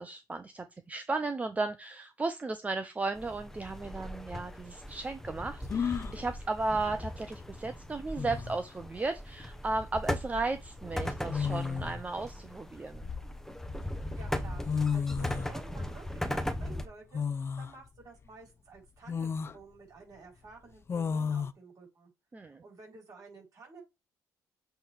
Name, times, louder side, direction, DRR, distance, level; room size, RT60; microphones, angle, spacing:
voice 1, 0.0-13.1 22.3-22.6, right 3 dB, 20° right, 0.7 m, -35 dB
sound 1, 3.1-16.9, left 1 dB, 5° left, 1.0 m, -38 dB
sound 2, 4.1-4.2 5.7-6.2 7.7-7.8 8.2-8.7 10.0-10.2 11.3-12.0 12.7-13.7 14.4-14.5 14.6-15.5 17.1-17.7 18.3-18.4 19.1-19.6 20.9-21.5, left 6 dB, 35° left, 0.6 m, -32 dB
voice 2, 14.1-14.7 14.9-22.1 22.4-23.8, right 4 dB, 50° right, 4.7 m, -52 dB
7.7 x 3.3 x 4.6 m
cardioid pair, 95°, 7 cm